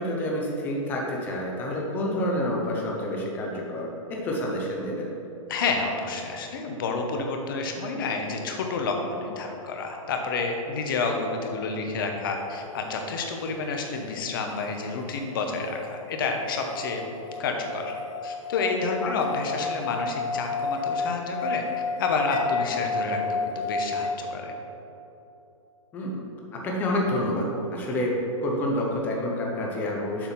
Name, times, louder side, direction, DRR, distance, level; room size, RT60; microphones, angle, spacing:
voice 1, 0.0-5.1 19.0-19.1 25.9-26.2 26.5-28.1 28.4-30.3, left 1 dB, 10° left, -1 dB, 0.7 m, -28 dB
voice 2, 5.5-17.0 17.4-17.9 18.2-21.6 22.0-24.5, left 4 dB, 40° left, 3 dB, 0.9 m, -29 dB
sound 1, 15.8-24.2, left 4 dB, 75° left, 0.8 m, -31 dB
7.1 x 5.5 x 5.6 m, 2.9 s
hypercardioid pair, 175°, 18 cm